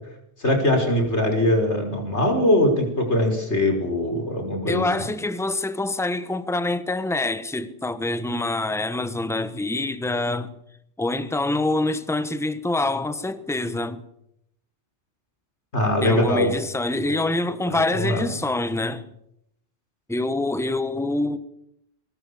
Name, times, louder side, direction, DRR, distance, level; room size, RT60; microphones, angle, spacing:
voice 1, 0.4-4.9 15.7-16.5 16.9-17.2 17.7-18.2, left 1 dB, 60° left, 5.8 m, -22 dB
voice 2, 4.7-10.6 11.0-14.0 16.0-19.0 20.1-21.4, left 2 dB, ahead, 1.2 m, -25 dB
24.0 x 20.5 x 7.1 m
omnidirectional pair, 1.3 m